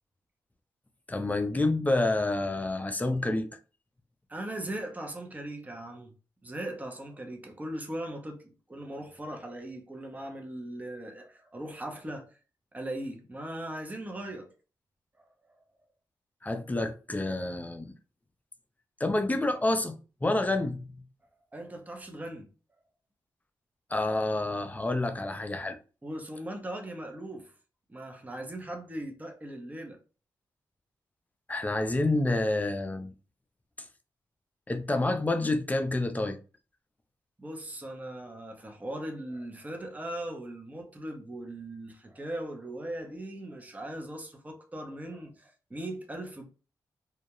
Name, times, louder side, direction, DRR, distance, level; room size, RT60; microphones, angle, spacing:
voice 1, 1.1-3.5 16.4-17.9 19.0-19.9 20.2-20.8 23.9-25.8 31.5-33.1 34.7-36.4, left 2 dB, 20° left, 0.5 m, -28 dB
voice 2, 4.3-6.1 6.4-8.4 8.7-12.3 12.7-14.5 15.2-15.3 21.5-22.5 26.0-27.5 27.9-30.0 37.4-46.4, right 1 dB, 20° right, 0.7 m, -39 dB
2.3 x 2.1 x 2.9 m
cardioid pair, 65°, 8 cm